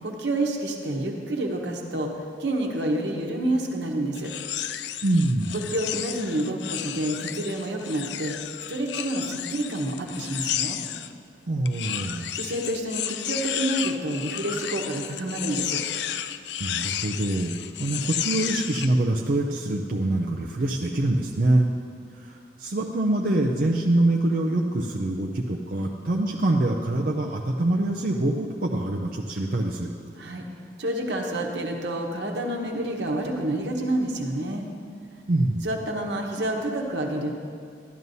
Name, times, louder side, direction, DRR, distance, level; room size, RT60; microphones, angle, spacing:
voice 1, 0.0-2.1 2.4-4.3 5.5-8.3 8.7-10.8 12.3-15.8 30.2-30.4 30.8-34.7 35.6-37.3, right 1 dB, 80° right, 1 dB, 1.1 m, -28 dB
sound 1, 4.2-11.1 11.7-18.9, left 11 dB, 75° left, 0.3 m, -32 dB
voice 2, 5.0-5.6 11.5-12.3 16.6-21.7 22.2-29.9 35.3-35.7, right 1 dB, 55° right, -1 dB, 0.5 m, -25 dB
12.0 x 11.0 x 2.7 m, 2.2 s
head